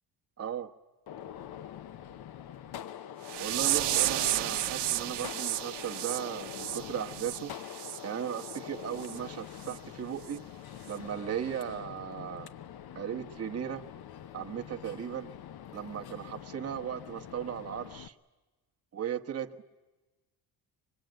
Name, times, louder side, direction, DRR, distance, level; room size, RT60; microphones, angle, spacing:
voice 1, 0.4-0.7 3.4-10.4 10.9-12.5 12.9-13.8 14.3-15.3 15.7-18.1 18.9-19.7, right 9 dB, 35° right, 5 dB, 1.2 m, -37 dB
Gunshot gunfire, 1.1-18.1, left 10 dB, 65° left, 0.9 m, -45 dB
sound 1, 3.3-8.0 8.4-8.6 9.0-9.2 9.7-9.8 10.3-10.4, right 14 dB, 85° right, 1.0 m, -32 dB
24.5 x 21.5 x 9.1 m, 1.2 s
cardioid pair, 115°, 40 cm